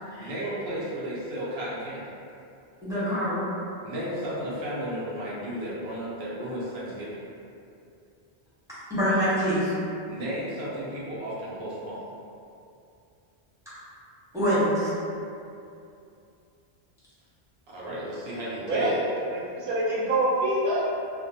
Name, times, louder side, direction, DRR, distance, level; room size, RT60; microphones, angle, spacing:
voice 1, 0.0-2.1 3.8-7.2 10.1-12.1 17.7-19.0, equal, 85° right, -7 dB, 0.9 m, -34 dB
voice 2, 2.8-3.4 8.9-9.7 14.3-14.9, equal, 5° right, -13 dB, 0.8 m, -25 dB
voice 3, 19.3-20.9, right 1 dB, 60° right, -8 dB, 0.8 m, -25 dB
2.4 x 2.1 x 2.6 m, 2.6 s
omnidirectional pair, 1.0 m